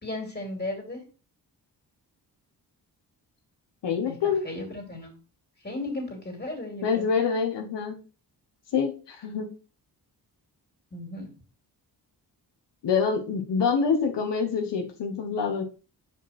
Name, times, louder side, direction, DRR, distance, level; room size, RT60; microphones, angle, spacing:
voice 1, 0.0-1.0 4.0-5.2 5.6-7.1 10.9-11.3, left 2 dB, 25° left, 1 dB, 2.8 m, -35 dB
voice 2, 3.8-4.4 6.8-8.0 8.7-9.5 12.8-15.6, left 6 dB, 85° left, 3 dB, 1.1 m, -26 dB
5.4 x 5.1 x 4.3 m, 0.35 s
cardioid pair, 80°, 42 cm